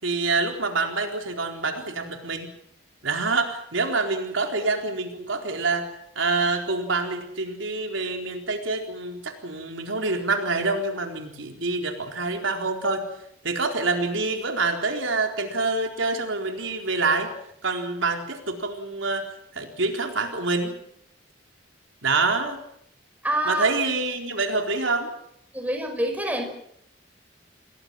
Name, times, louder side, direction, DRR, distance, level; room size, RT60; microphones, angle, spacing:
voice 1, 0.0-2.5 3.0-5.9 6.2-13.1 13.4-17.3 17.6-19.2 19.5-20.7 22.0-22.6 23.5-25.1, right 3 dB, 80° right, 3 dB, 4.1 m, -26 dB
voice 2, 23.2-23.7 25.5-26.4, right 1 dB, 10° right, 3 dB, 5.8 m, -26 dB
28.5 x 19.5 x 7.6 m, 0.74 s
head